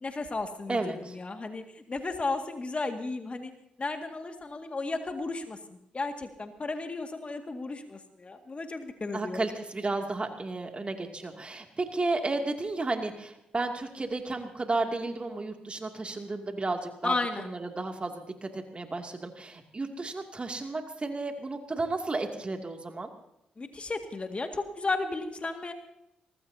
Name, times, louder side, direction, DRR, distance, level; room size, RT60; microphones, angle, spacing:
voice 1, 0.0-3.5 3.8-9.4 17.0-17.5 23.6-25.7, left 3 dB, 35° left, 5 dB, 2.0 m, -34 dB
voice 2, 0.7-1.1 9.1-23.1, right 3 dB, 30° right, 4 dB, 2.5 m, -33 dB
23.5 x 19.5 x 2.8 m, 0.81 s
hypercardioid pair, 45°, 4 cm